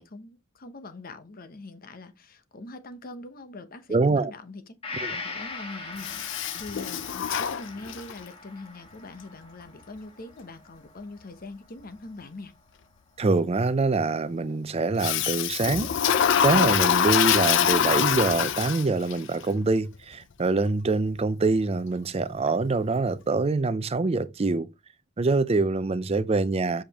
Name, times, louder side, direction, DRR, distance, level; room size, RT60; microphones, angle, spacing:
voice 1, 0.0-12.5, left 2 dB, 45° left, 0.9 m, -43 dB
voice 2, 3.9-4.3 5.0-5.1 13.2-24.7 25.2-26.8, right 3 dB, 30° right, 0.4 m, -25 dB
Gong, 4.8-12.5 12.9-13.0, left 3 dB, 25° left, 1.3 m, -41 dB
Toilet flush, 6.0-8.2 15.0-19.1, left 8 dB, 60° left, 0.5 m, -24 dB
7.3 x 5.0 x 2.9 m
head